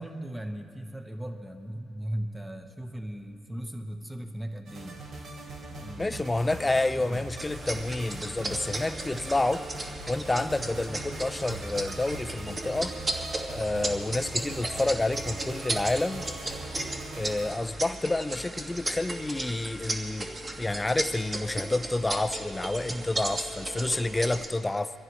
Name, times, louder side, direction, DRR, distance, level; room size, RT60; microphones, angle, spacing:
voice 1, 0.0-5.0 5.7-6.2 6.6-7.2 22.8-23.1, right 1 dB, 5° right, 4 dB, 1.2 m, -38 dB
sound 1, 4.7-17.5, right 2 dB, 70° right, 3.5 m, -41 dB
voice 2, 6.0-9.6 10.1-12.9 13.5-16.3 17.2-20.3 20.6-24.9, left 2 dB, 15° left, 11 dB, 0.6 m, -29 dB
sound 2, 7.4-24.5, right 1 dB, 25° right, 1.9 m, -35 dB
24.5 x 15.0 x 3.2 m, 2.4 s
cardioid pair, 90°, 0 cm